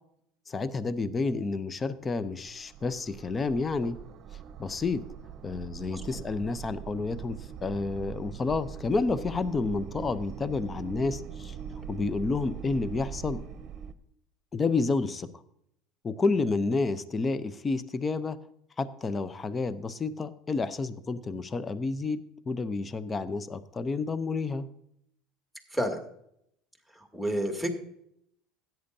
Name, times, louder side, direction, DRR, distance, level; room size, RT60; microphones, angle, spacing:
voice 1, 0.5-4.0 4.6-5.0 5.4-11.6 11.9-13.4 14.5-15.3 16.0-18.4 18.8-24.7, left 3 dB, 25° left, 15 dB, 0.7 m, -30 dB
sound 1, 2.2-13.9, right 8 dB, 50° right, 0.8 m, -42 dB
voice 2, 5.9-6.2 25.7-26.0 26.9-27.7, equal, 5° left, 3 dB, 2.3 m, -30 dB
16.5 x 9.1 x 2.8 m, 0.73 s
hypercardioid pair, 75°, 0 cm